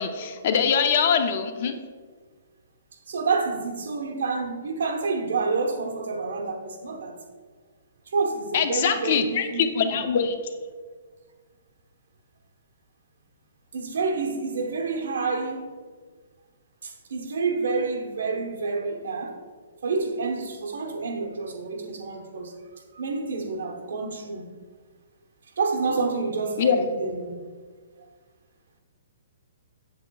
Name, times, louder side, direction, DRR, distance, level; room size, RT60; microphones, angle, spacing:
voice 1, 0.0-1.8 8.5-10.3 26.6-26.8, left 7 dB, 35° left, 0.5 m, -23 dB
voice 2, 3.1-7.2 8.1-10.0 13.7-15.7 16.8-19.4 19.8-22.5 22.9-24.5 25.6-27.5 28.0-28.1, right 4 dB, 75° right, 1.0 m, -28 dB
7.7 x 7.2 x 2.3 m
hypercardioid pair, 175°, 0 cm